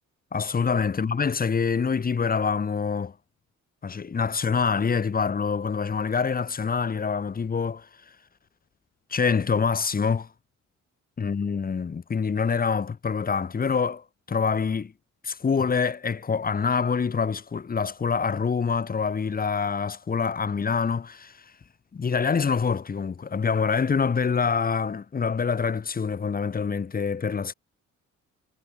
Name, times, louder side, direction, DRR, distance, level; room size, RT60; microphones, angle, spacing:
voice 1, 0.3-3.1 3.8-7.9 9.1-10.3 11.2-14.9 15.2-21.4 21.9-27.5, left 5 dB, 30° left, 1.1 m, -26 dB
cardioid pair, 90°, 30 cm